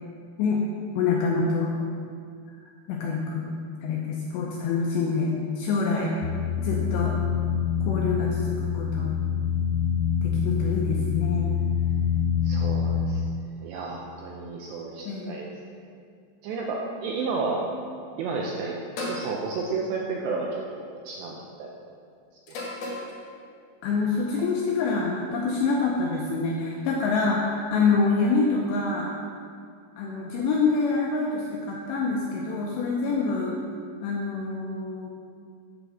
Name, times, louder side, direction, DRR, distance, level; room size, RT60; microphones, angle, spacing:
voice 1, 1.0-1.7 2.9-3.5 3.8-6.1 6.6-7.1 7.9-9.1 10.2-11.6 15.0-15.4 23.8-29.1 30.0-33.6 34.0-35.1, left 4 dB, 85° left, -2 dB, 2.5 m, -26 dB
sound 1, 6.2-13.0, left 7 dB, 40° left, 3.2 m, -26 dB
voice 2, 12.4-13.2 13.6-15.5 16.4-17.6 18.2-21.7, right 4 dB, 85° right, -1 dB, 2.5 m, -32 dB
sound 2, 19.0-19.3 20.5-20.8 22.5-23.1, left 2 dB, 60° left, 3.1 m, -33 dB
8.9 x 4.9 x 6.7 m, 2.2 s
omnidirectional pair, 5.7 m